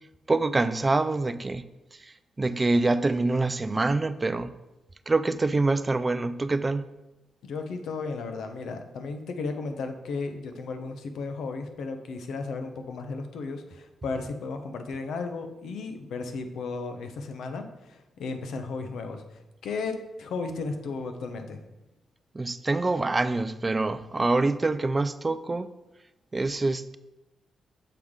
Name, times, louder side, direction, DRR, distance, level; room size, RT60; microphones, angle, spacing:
voice 1, 0.3-1.6 2.4-4.5 5.1-6.8 22.3-25.7 26.3-27.0, right 3 dB, 25° right, 13 dB, 0.3 m, -25 dB
voice 2, 7.4-19.2 19.6-21.6, left 4 dB, 80° left, 6 dB, 0.7 m, -34 dB
6.8 x 4.7 x 3.7 m, 0.99 s
cardioid pair, 90°, 0 cm